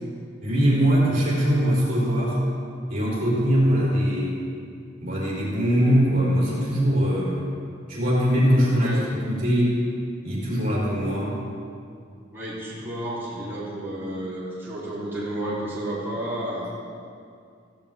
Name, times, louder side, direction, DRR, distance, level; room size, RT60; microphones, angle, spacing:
voice 1, 0.4-2.4 2.9-4.4 5.0-7.4 7.9-9.8 10.2-11.4, equal, 45° right, -6 dB, 4.2 m, -22 dB
voice 2, 8.6-9.1 12.3-16.7, right 1 dB, 10° right, -11 dB, 3.8 m, -31 dB
16.0 x 15.5 x 3.7 m, 2.4 s
head